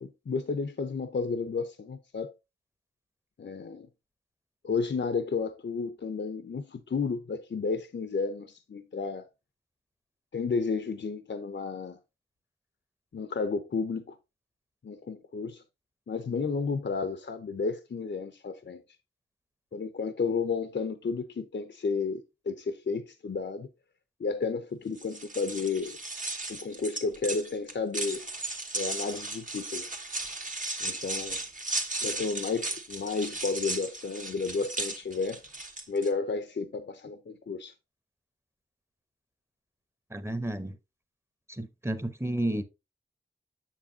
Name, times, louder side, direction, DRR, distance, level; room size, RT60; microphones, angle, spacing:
voice 1, 0.0-2.3 3.4-3.9 4.6-9.3 10.3-12.0 13.1-14.1 14.8-15.6 16.1-18.8 19.7-23.7 24.2-26.0 26.5-28.3 28.7-29.9 30.8-31.4 32.0-35.4 35.9-37.7, left 4 dB, 70° left, 0.7 m, -32 dB
sound 1, 25.0-36.1, right 2 dB, 40° right, 1.3 m, -36 dB
voice 2, 40.1-40.8 41.5-42.6, right 1 dB, 15° right, 0.9 m, -31 dB
7.4 x 6.8 x 2.7 m
wide cardioid pair, 55°, 19 cm